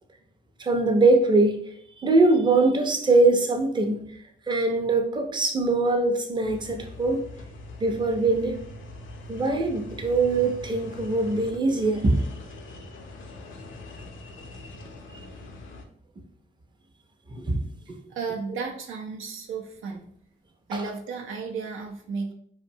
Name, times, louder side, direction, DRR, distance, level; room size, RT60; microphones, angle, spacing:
voice 1, 0.6-1.6 2.0-4.0 4.5-7.2 7.8-8.6 9.3-12.2 17.3-17.6 20.7-20.8, right 2 dB, 25° right, 4 dB, 0.5 m, -22 dB
sound 1, 6.4-15.8, left 1 dB, 75° left, 0.4 m, -42 dB
voice 2, 18.1-20.1 20.7-22.3, right 5 dB, 90° right, 2 dB, 0.5 m, -33 dB
2.6 x 2.1 x 2.7 m, 0.63 s
cardioid pair, 65°, 20 cm